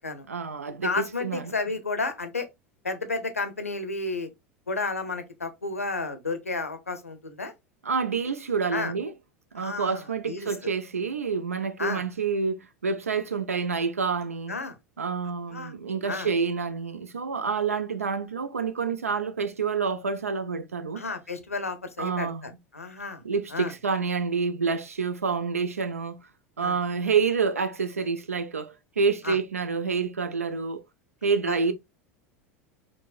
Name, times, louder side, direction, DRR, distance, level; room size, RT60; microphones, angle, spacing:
voice 1, 0.3-1.5 7.8-9.1 9.5-14.6 15.0-21.0 22.0-22.5 23.2-26.2 26.6-30.8 31.2-31.7, right 5 dB, 85° right, 0.4 m, -28 dB
voice 2, 0.8-2.5 2.8-4.3 4.7-7.5 8.7-8.9 9.6-10.0 10.3-10.5 11.8-12.0 14.5-14.8 15.5-15.7 16.1-16.3 20.9-23.2 23.5-23.7 26.6-26.7 29.2-29.4 31.5-31.7, left 3 dB, 90° left, 0.5 m, -32 dB
4.6 x 2.0 x 2.4 m
figure-of-eight pair, 80°, 8 cm